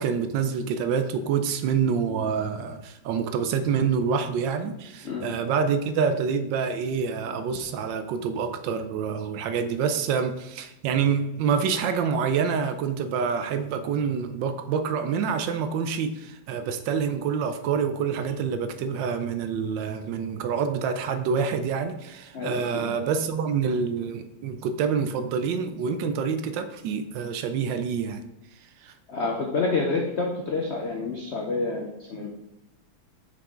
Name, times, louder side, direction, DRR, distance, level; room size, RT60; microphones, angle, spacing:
voice 1, 0.0-28.2 28.8-28.9, right 6 dB, 75° right, 9 dB, 1.2 m, -27 dB
voice 2, 22.3-22.9 29.1-32.3, left 3 dB, 70° left, 1 dB, 0.6 m, -28 dB
6.0 x 5.6 x 3.7 m, 0.91 s
omnidirectional pair, 2.2 m